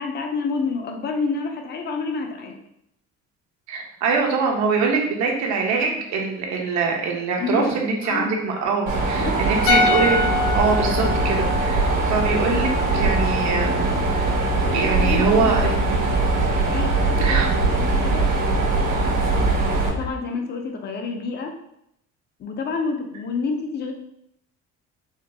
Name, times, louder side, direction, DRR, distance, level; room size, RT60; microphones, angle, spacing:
voice 1, 0.0-2.6 7.4-7.7 8.0-8.4 9.1-9.4 14.7-16.1 16.7-18.3 19.9-21.5 22.4-23.9, left 4 dB, 35° left, 4 dB, 0.5 m, -29 dB
voice 2, 3.7-10.2 10.5-12.7 12.9-13.9 14.7-15.8 17.2-17.5, right 4 dB, 65° right, 1 dB, 0.8 m, -23 dB
Mechanisms, 8.9-19.9, right 3 dB, 80° right, 1.5 m, -22 dB
sound 1, 9.7-12.9 13.1-13.3, left 3 dB, 85° left, 0.6 m, -25 dB
sound 2, 10.2-20.1, left 4 dB, 65° left, 1.1 m, -29 dB
4.9 x 2.2 x 2.7 m, 0.77 s
cardioid pair, 165°, 31 cm